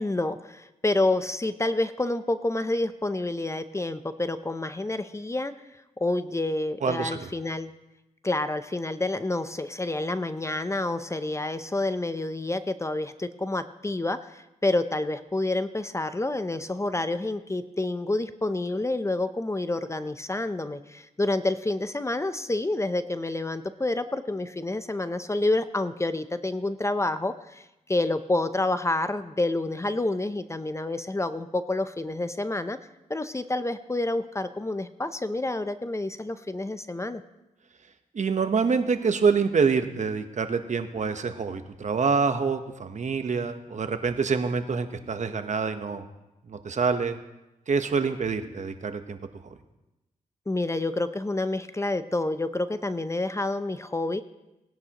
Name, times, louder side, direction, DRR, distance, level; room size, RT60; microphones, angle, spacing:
voice 1, 0.0-5.5 6.0-7.7 8.2-32.8 33.1-37.2 50.5-54.2, left 2 dB, 20° left, 11 dB, 0.6 m, -28 dB
voice 2, 6.8-7.3 38.1-46.0 46.5-47.2 47.7-49.2, right 5 dB, 55° right, 8 dB, 1.0 m, -26 dB
19.0 x 10.5 x 3.0 m, 0.97 s
cardioid pair, 70°, 14 cm